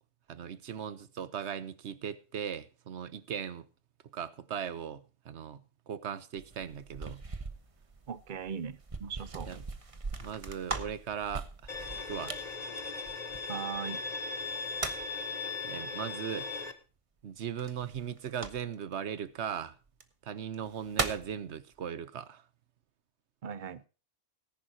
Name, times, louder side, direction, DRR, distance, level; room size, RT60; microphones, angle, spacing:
voice 1, 0.3-3.7 4.1-7.2 9.5-9.6 10.2-11.7 12.1-12.4 15.6-16.5 17.2-19.8 20.2-22.4, right 8 dB, 65° right, 1.2 m, -38 dB
sound 1, 6.4-13.8 14.4-15.2 17.6-18.9 19.9-20.0 20.5-21.3, right 3 dB, 30° right, 1.1 m, -40 dB
voice 2, 8.1-9.5 13.5-14.0 23.4-23.8, right 7 dB, 45° right, 0.9 m, -39 dB
Bowed string instrument, 11.7-16.7, left 4 dB, 35° left, 1.3 m, -38 dB
18.5 x 10.5 x 2.8 m
omnidirectional pair, 1.2 m